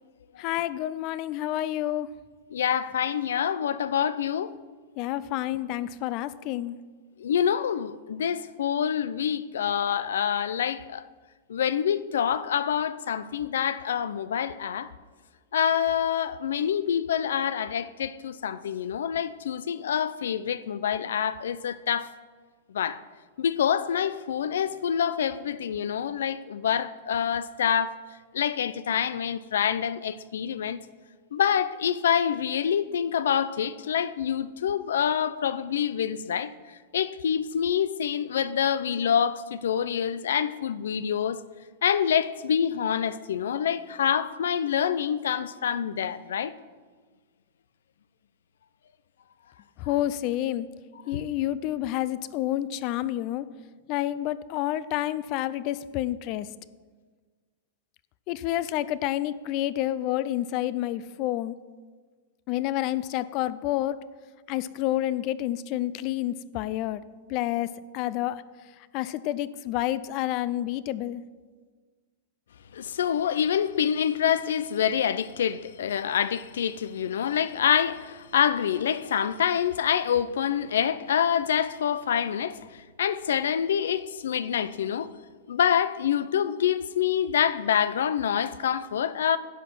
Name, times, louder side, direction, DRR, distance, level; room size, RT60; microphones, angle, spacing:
voice 1, 0.4-2.1 5.0-6.8 49.8-50.7 51.1-53.4 53.9-56.5 58.3-61.5 62.5-64.0 64.5-67.0 67.3-67.7 67.9-68.4 68.9-71.2, left 14 dB, 35° left, 0.4 m, -29 dB
voice 2, 2.5-4.5 7.2-11.0 11.5-14.9 15.5-22.1 22.7-23.0 23.4-28.0 28.3-30.8 31.3-36.5 36.9-41.4 41.8-46.5 51.1-51.2 72.7-85.1 85.5-89.4, left 8 dB, 90° left, 0.5 m, -26 dB
11.0 x 7.3 x 6.1 m
supercardioid pair, 160°, 0 cm